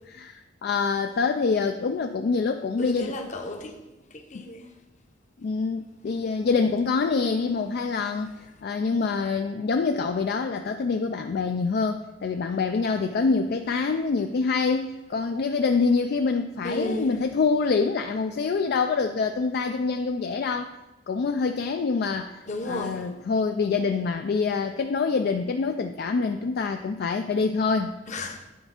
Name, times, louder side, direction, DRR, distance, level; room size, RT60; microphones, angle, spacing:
voice 1, 0.1-3.1 4.3-4.4 5.4-8.3 8.6-20.7 21.1-28.0, left 4 dB, 55° left, 0.3 m, -26 dB
voice 2, 2.8-3.8 4.1-4.8 8.0-8.1 16.6-17.1 22.5-23.1 28.1-28.4, left 1 dB, 40° left, 0.8 m, -33 dB
9.4 x 3.4 x 5.7 m
head